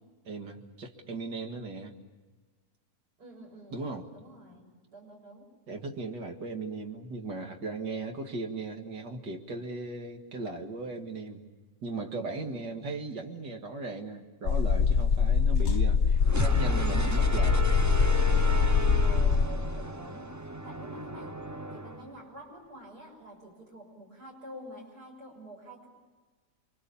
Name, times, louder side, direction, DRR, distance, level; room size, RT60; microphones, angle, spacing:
voice 1, 0.2-1.9 3.7-4.1 5.7-11.5 11.8-17.7, right 3 dB, 90° right, 3 dB, 2.6 m, -37 dB
voice 2, 3.2-3.8 4.1-5.5 12.4-12.9 19.0-20.4 20.6-21.4 21.7-25.9, equal, 70° right, 0 dB, 6.8 m, -48 dB
sound 1, 14.5-19.4, left 6 dB, 50° left, 1.1 m, -24 dB
sound 2, 16.2-22.1, equal, 25° right, 0.3 m, -32 dB
29.0 x 24.0 x 7.1 m, 1.3 s
omnidirectional pair, 1.8 m